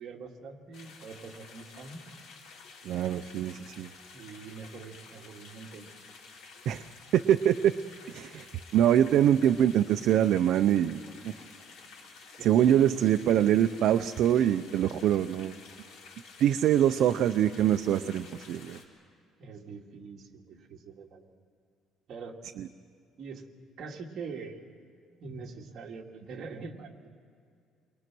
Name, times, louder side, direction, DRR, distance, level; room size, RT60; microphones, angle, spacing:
voice 1, 0.0-2.0 4.1-5.9 12.4-13.1 19.4-21.4 22.1-22.4 23.2-23.5 23.8-24.6 25.2-27.1, right 4 dB, 45° right, 0 dB, 2.3 m, -43 dB
sound 1, 0.7-18.8, left 4 dB, 80° left, 4.0 m, -51 dB
voice 2, 2.8-3.9 6.7-6.8 7.1-7.7 8.1-8.5 8.7-11.0 11.2-11.3 12.4-15.5 16.4-18.8 22.6-22.7, right 10 dB, 60° right, 8 dB, 0.6 m, -24 dB
29.0 x 22.5 x 6.2 m, 2.4 s
cardioid pair, 155°, 0 cm